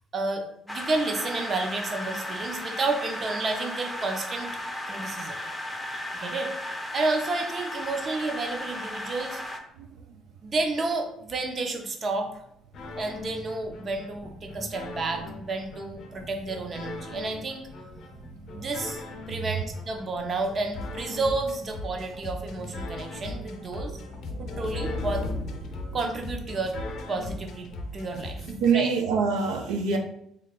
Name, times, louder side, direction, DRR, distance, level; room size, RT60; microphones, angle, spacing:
voice 1, 0.1-4.5 4.9-5.4 6.1-6.5 6.9-9.4 10.4-12.4 13.0-17.6 18.5-19.0 19.3-24.0 24.4-25.3 25.9-26.8 27.1-28.5 28.7-28.9, right 3 dB, 40° right, 4 dB, 0.6 m, -31 dB
sound 1, 0.7-9.6, left 1 dB, 5° left, 0.5 m, -35 dB
sound 2, 12.7-28.7, left 2 dB, 55° left, 0.6 m, -39 dB
sound 3, 24.0-26.9, left 3 dB, 70° right, 0.8 m, -35 dB
voice 2, 28.5-30.0, right 5 dB, 85° right, 3 dB, 0.4 m, -24 dB
3.2 x 2.3 x 3.6 m, 0.74 s
cardioid pair, 100°, 0 cm